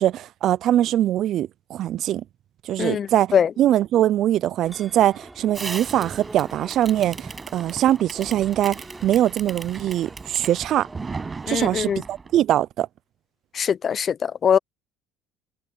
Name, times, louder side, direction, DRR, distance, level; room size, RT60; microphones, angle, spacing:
voice 1, 0.0-2.2 2.6-10.9 11.5-12.9, right 12 dB, 60° right, 0.5 m, -22 dB
voice 2, 2.8-3.5 11.5-12.0 13.5-14.6, left 8 dB, 40° left, 0.7 m, -22 dB
sound 1, 4.6-11.7, right 2 dB, 10° right, 6.6 m, -45 dB
Fireworks, 5.5-12.4, right 4 dB, 25° right, 7.9 m, -37 dB
supercardioid pair, 90°, 0 cm